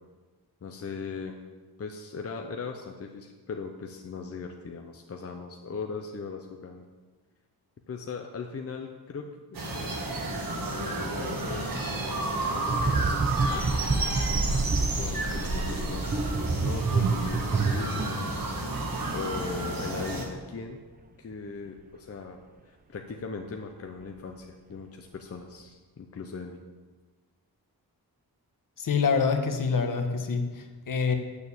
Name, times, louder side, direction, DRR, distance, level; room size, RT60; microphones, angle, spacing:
voice 1, 0.6-1.4 1.8-6.9 7.9-10.2 10.5-13.8 14.9-18.3 19.1-20.8 21.2-26.6, left 5 dB, 40° left, 3 dB, 0.7 m, -39 dB
sound 1, 9.5-20.3, right 2 dB, 60° right, 1.9 m, -31 dB
sound 2, 12.7-20.1 20.3-20.6, right 4 dB, 25° right, 0.5 m, -29 dB
voice 2, 28.8-31.2, left 5 dB, 60° left, 6 dB, 1.2 m, -26 dB
9.2 x 6.7 x 8.5 m, 1.3 s
wide cardioid pair, 180°, 38 cm